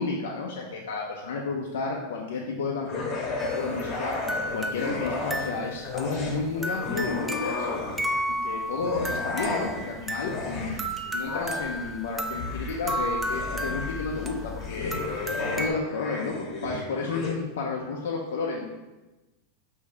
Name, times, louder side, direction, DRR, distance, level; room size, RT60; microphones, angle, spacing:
voice 1, 0.0-4.2 4.5-7.8 8.3-10.8 11.1-18.7, left 4 dB, 80° left, -1 dB, 0.5 m, -32 dB
sound 1, 2.9-5.5 5.8-8.2 8.7-17.3, left 3 dB, 45° left, 0.9 m, -34 dB
sound 2, 3.4-15.7, equal, 10° right, 0.4 m, -33 dB
4.9 x 2.7 x 3.3 m, 1.1 s
hypercardioid pair, 115°, 0 cm